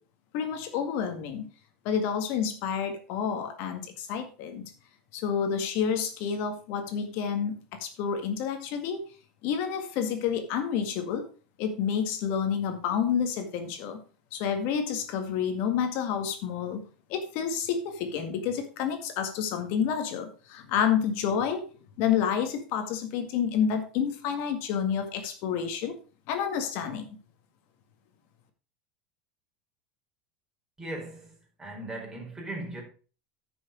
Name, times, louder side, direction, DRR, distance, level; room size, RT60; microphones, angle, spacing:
voice 1, 0.3-1.5 1.8-4.7 5.1-9.0 9.4-11.3 11.6-14.0 14.3-16.8 17.1-21.6 22.0-26.0 26.3-27.2, left 7 dB, 60° left, 2.0 m, -29 dB
voice 2, 30.8-32.8, right 1 dB, 10° right, 4.5 m, -38 dB
9.7 x 6.4 x 5.1 m
supercardioid pair, 120°, 4 cm